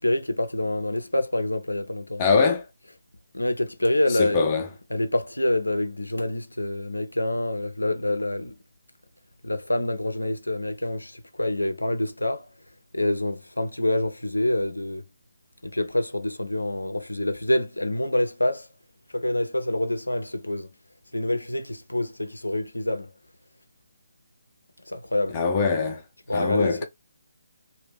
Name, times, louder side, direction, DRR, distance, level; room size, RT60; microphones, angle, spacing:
voice 1, 0.0-2.2 3.3-4.4 4.9-8.5 9.4-12.5 12.9-15.0 15.6-18.7 19.1-20.7 21.1-23.1 24.9-25.4 26.3-26.8, left 1 dB, 80° left, 0.5 m, -26 dB
voice 2, 2.2-2.6 4.2-4.6 25.3-26.0 26.3-26.8, left 4 dB, 25° left, 0.5 m, -22 dB
2.5 x 2.2 x 3.4 m
figure-of-eight pair, 145°, 0 cm